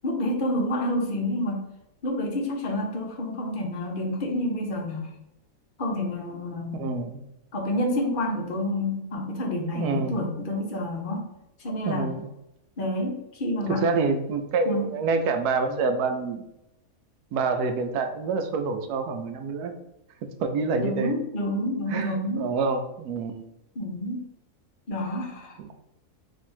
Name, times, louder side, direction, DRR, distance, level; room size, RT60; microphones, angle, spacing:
voice 1, 0.0-1.6 2.0-5.1 5.8-6.9 7.5-11.3 11.6-12.1 12.8-13.8 14.6-14.9 20.8-22.5 23.8-24.2 24.9-25.6, left 1 dB, 45° left, 1 dB, 0.7 m, -28 dB
voice 2, 6.7-7.2 9.7-10.2 11.8-12.3 13.7-16.4 17.3-19.7 20.4-21.1 21.9-23.4 25.6-25.7, right 4 dB, 80° right, 6 dB, 1.1 m, -27 dB
3.4 x 2.6 x 4.3 m, 0.87 s
omnidirectional pair, 1.7 m